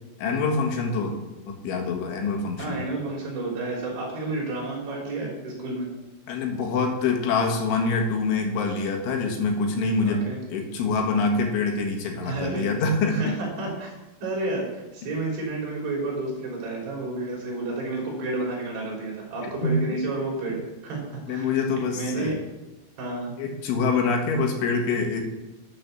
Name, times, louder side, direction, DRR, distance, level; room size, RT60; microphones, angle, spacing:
voice 1, 0.2-1.2 1.5-2.8 6.3-10.2 10.5-13.4 19.6-19.8 21.3-22.4 23.4-25.2, left 4 dB, 75° left, 2 dB, 4.0 m, -25 dB
voice 2, 2.6-5.9 10.0-10.4 12.2-12.7 13.1-13.9 14.2-21.0 21.3-21.5 21.9-22.3 23.0-23.3, right 2 dB, 60° right, -2 dB, 5.4 m, -30 dB
12.0 x 7.9 x 6.8 m, 1.1 s
omnidirectional pair, 5.6 m